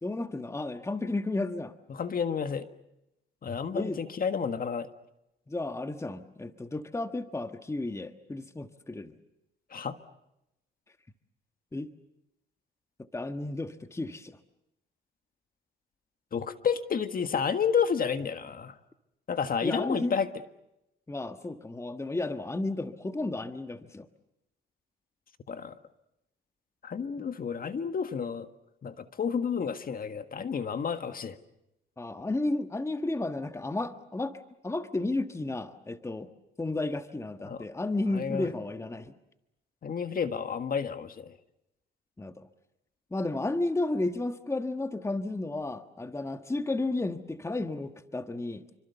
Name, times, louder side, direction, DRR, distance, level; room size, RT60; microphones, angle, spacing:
voice 1, 0.0-1.8 3.7-4.0 5.5-9.2 11.7-11.9 13.1-14.4 19.6-20.2 21.1-24.1 32.0-34.4 34.6-36.3 36.6-39.1 42.2-42.5 43.1-48.6, left 2 dB, 15° left, 9 dB, 1.4 m, -32 dB
voice 2, 1.9-2.7 3.4-4.9 9.7-9.9 16.3-18.8 19.3-20.3 25.5-25.8 26.8-28.5 28.8-31.4 37.4-37.6 38.1-38.5 39.8-41.3, left 6 dB, 45° left, 9 dB, 1.7 m, -30 dB
28.0 x 25.0 x 6.9 m, 0.87 s
cardioid pair, 90°, 20 cm